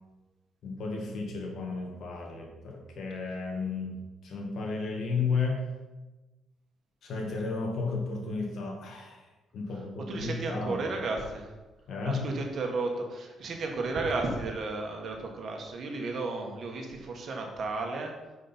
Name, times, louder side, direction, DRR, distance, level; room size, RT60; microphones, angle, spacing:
voice 1, 0.6-4.0 4.2-5.6 7.0-9.2 9.5-10.9 11.9-12.3, left 4 dB, 65° left, 0 dB, 2.0 m, -33 dB
voice 2, 10.1-11.5 12.1-18.1, right 3 dB, 55° right, 2 dB, 1.6 m, -33 dB
9.4 x 5.1 x 4.5 m, 1.1 s
cardioid pair, 90°, 0 cm